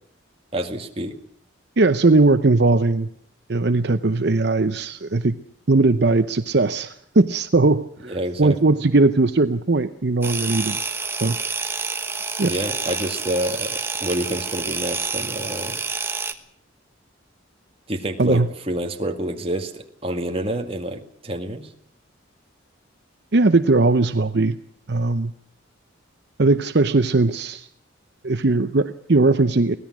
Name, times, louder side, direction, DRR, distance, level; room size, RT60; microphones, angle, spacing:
voice 1, 0.5-1.1 8.0-8.8 12.5-15.8 17.9-21.7, right 1 dB, 30° right, 4 dB, 2.1 m, -28 dB
voice 2, 1.8-3.1 3.5-5.4 5.7-10.8 11.2-11.4 12.4-12.5 18.2-18.5 23.3-24.6 24.9-25.3 26.4-27.7 28.2-29.8, right 3 dB, 55° right, 10 dB, 0.8 m, -19 dB
sound 1, 10.2-16.3, right 4 dB, 10° right, 1.3 m, -28 dB
24.0 x 17.5 x 6.1 m, 0.69 s
head